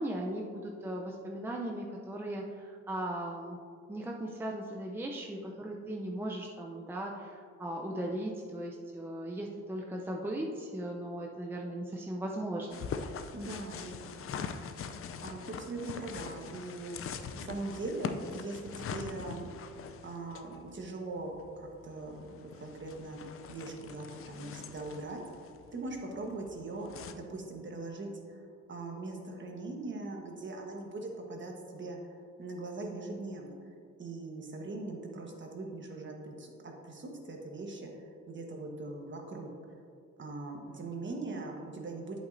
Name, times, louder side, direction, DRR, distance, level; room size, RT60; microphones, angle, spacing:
voice 1, 0.0-3.6 3.9-12.9, right 1 dB, 10° right, -1 dB, 0.6 m, -38 dB
sound 1, 12.7-27.1, left 6 dB, 50° left, 0.5 m, -43 dB
voice 2, 13.3-14.2 15.2-17.0 17.3-19.5 20.0-33.5 34.0-39.5 40.2-42.2, right 2 dB, 40° right, 1 dB, 1.3 m, -41 dB
8.2 x 7.9 x 2.7 m, 2.2 s
cardioid pair, 90°, 30 cm